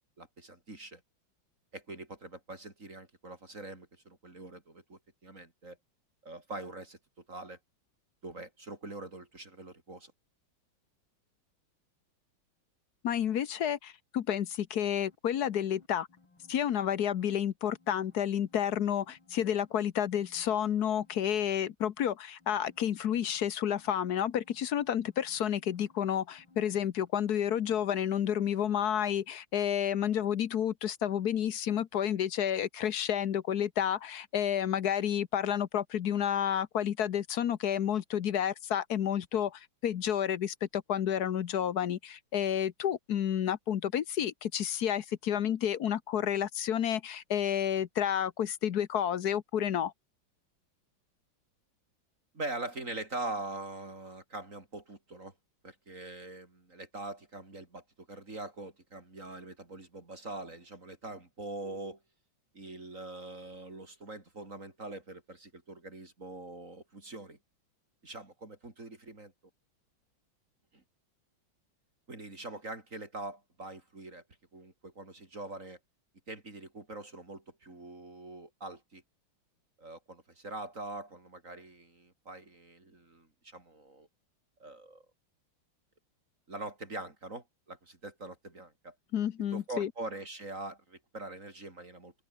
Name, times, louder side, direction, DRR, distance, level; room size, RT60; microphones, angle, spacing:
voice 1, 0.2-1.0 1.7-5.8 6.2-7.0 7.3-7.6 8.2-10.1 52.3-55.3 55.6-62.0 62.5-67.4 68.0-69.3 70.7-70.8 72.1-74.2 74.5-75.8 76.3-79.0 79.8-84.1 84.6-85.0 86.5-89.0 89.5-92.1, right 2 dB, 40° right, 4.0 m, -43 dB
voice 2, 13.0-16.1 16.5-49.9 89.1-89.9, left 9 dB, 60° left, 1.3 m, -30 dB
sound 1, 15.1-17.4 17.7-19.7 20.1-21.5 22.4-28.0 28.3-28.5, left 3 dB, 85° left, 6.3 m, -63 dB
open air
omnidirectional pair, 2.2 m